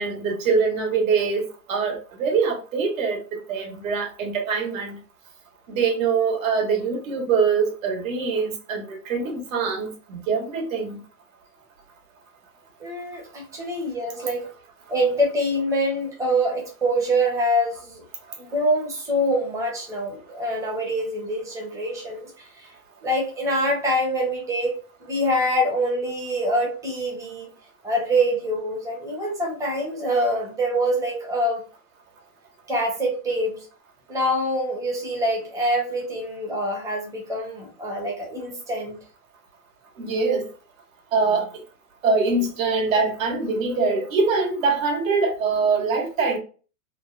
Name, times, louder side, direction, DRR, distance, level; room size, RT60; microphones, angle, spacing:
voice 1, 0.0-5.0 5.7-11.0 14.2-14.3 40.0-40.5 41.1-41.6 42.0-46.4, right 4 dB, 65° right, 1.2 m, -23 dB
voice 2, 12.8-14.5 14.9-18.0 18.4-22.7 23.0-24.7 25.0-27.5 27.8-31.6 32.7-33.6 34.1-39.0, equal, 5° right, 0.6 m, -25 dB
3.2 x 2.2 x 2.4 m
supercardioid pair, 145°, 43 cm